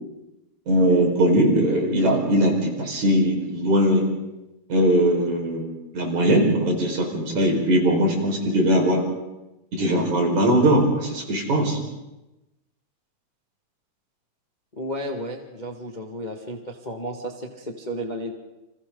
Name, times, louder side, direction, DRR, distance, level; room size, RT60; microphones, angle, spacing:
voice 1, 0.7-4.1 4.7-9.0 9.7-11.8, right 1 dB, 65° right, 0 dB, 6.4 m, -20 dB
voice 2, 14.7-18.3, equal, 20° left, 2 dB, 1.5 m, -33 dB
29.5 x 27.5 x 3.9 m, 0.98 s
omnidirectional pair, 3.6 m